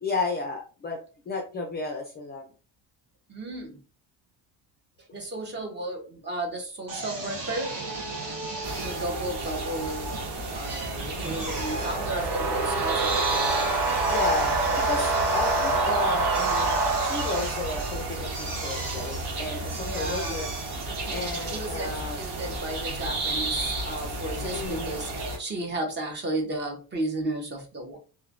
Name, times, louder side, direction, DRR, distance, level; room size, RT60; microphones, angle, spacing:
voice 1, 0.0-1.0 1.3-2.5 14.1-20.5 21.1-22.2 24.4-25.0, left 3 dB, 25° left, 1 dB, 0.4 m, -33 dB
voice 2, 3.3-3.8 5.0-7.8 8.8-10.2 10.5-13.8 19.8-20.4 21.5-28.0, right 1 dB, 25° right, 1 dB, 0.8 m, -34 dB
Drill, 6.9-22.2, right 2 dB, 50° right, 1.1 m, -37 dB
sound 1, 8.6-25.4, right 2 dB, 70° right, 1.3 m, -33 dB
sound 2, 11.1-18.1, right 3 dB, 85° right, 1.1 m, -27 dB
3.0 x 2.2 x 2.5 m, 0.35 s
cardioid pair, 135°, 41 cm